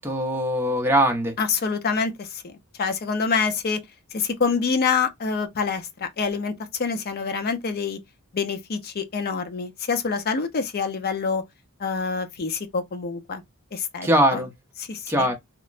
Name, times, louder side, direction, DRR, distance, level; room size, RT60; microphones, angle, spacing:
voice 1, 0.0-1.3 14.0-14.5 15.1-15.3, right 1 dB, 10° right, 0.6 m, -21 dB
voice 2, 1.4-3.8 4.1-8.0 8.3-11.4 11.8-13.4 13.7-14.4 14.8-15.3, left 5 dB, 45° left, 0.5 m, -26 dB
3.0 x 2.1 x 2.4 m
head